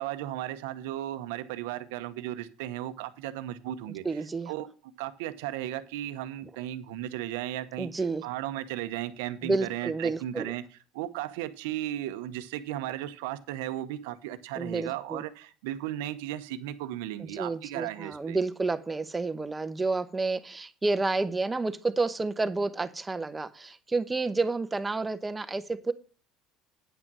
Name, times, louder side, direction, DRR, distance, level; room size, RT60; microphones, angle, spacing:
voice 1, 0.0-4.0 4.5-4.7 5.0-7.9 8.2-10.6 10.9-18.4, right 13 dB, 85° right, 12 dB, 0.8 m, -35 dB
voice 2, 4.0-4.5 7.8-8.3 9.4-10.5 14.6-15.2 17.2-25.9, right 3 dB, 15° right, 12 dB, 0.9 m, -30 dB
9.4 x 6.1 x 6.0 m, 0.37 s
supercardioid pair, 95°, 0 cm